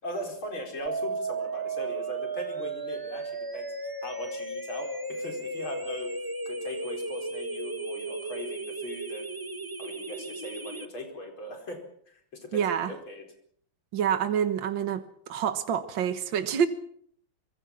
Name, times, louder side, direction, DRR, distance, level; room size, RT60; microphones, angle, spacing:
voice 1, 0.0-3.7 4.0-6.1 6.5-9.3 9.8-13.2, left 1 dB, 85° left, 5.6 m, -39 dB
sound 1, 0.9-10.9, right 3 dB, 15° right, 1.1 m, -35 dB
voice 2, 12.5-12.9 13.9-16.7, right 8 dB, 70° right, 2.1 m, -27 dB
25.0 x 22.0 x 6.0 m
omnidirectional pair, 2.2 m